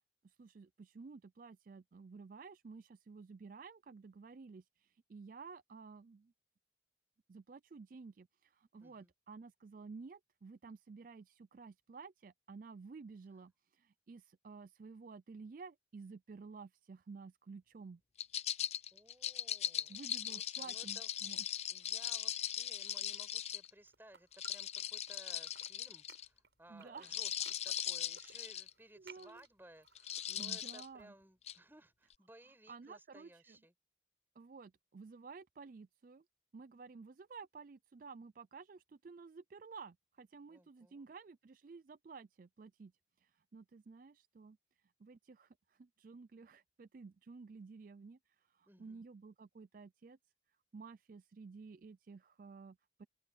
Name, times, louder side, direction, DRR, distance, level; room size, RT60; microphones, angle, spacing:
voice 1, 0.2-6.3 7.3-18.0 19.9-21.5 23.1-23.2 26.7-27.2 28.2-28.4 29.0-29.4 30.4-31.1 32.7-33.6 34.4-36.2 36.5-42.9 43.2-44.6 45.0-50.2 50.7-53.1, right 4 dB, 45° right, 0.4 m, -53 dB
voice 2, 8.8-9.1 18.9-21.1 21.7-27.4 27.6-33.7 40.5-41.1 48.7-49.0, right 1 dB, 10° right, 7.9 m, -60 dB
sound 1, 18.2-23.7 24.3-26.3 27.0-28.7 29.2-29.4 29.9-30.9 31.5-31.6, left 10 dB, 35° left, 0.5 m, -39 dB
sound 2, 23.5-25.1 25.4-31.0, right 6 dB, 70° right, 6.2 m, -61 dB
head